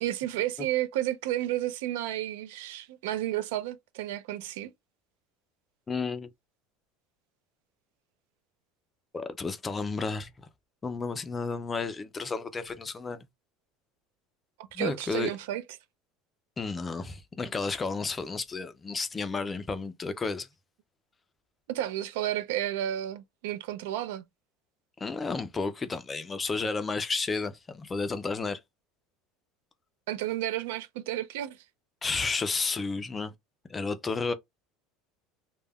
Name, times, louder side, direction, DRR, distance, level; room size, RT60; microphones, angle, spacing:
voice 1, 0.0-4.7 14.7-15.6 21.7-24.2 30.1-31.6, right 13 dB, 90° right, 0.4 m, -32 dB
voice 2, 5.9-6.3 9.1-10.3 10.8-13.3 14.7-15.3 16.6-20.5 25.0-28.6 32.0-33.3 33.7-34.3, left 4 dB, 15° left, 0.3 m, -32 dB
2.2 x 2.1 x 3.4 m
cardioid pair, 165°, 0 cm